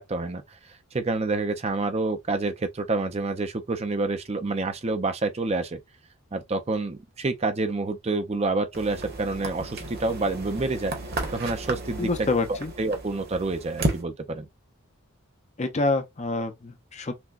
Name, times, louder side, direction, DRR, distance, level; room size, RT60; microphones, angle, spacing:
voice 1, 0.0-5.8 6.3-10.9 11.3-14.5, right 3 dB, 30° right, 0.5 m, -28 dB
sound 1, 8.7-14.0, right 2 dB, 45° right, 1.1 m, -33 dB
voice 2, 12.0-12.7 15.6-17.1, left 3 dB, 30° left, 0.5 m, -27 dB
5.9 x 2.2 x 2.4 m
head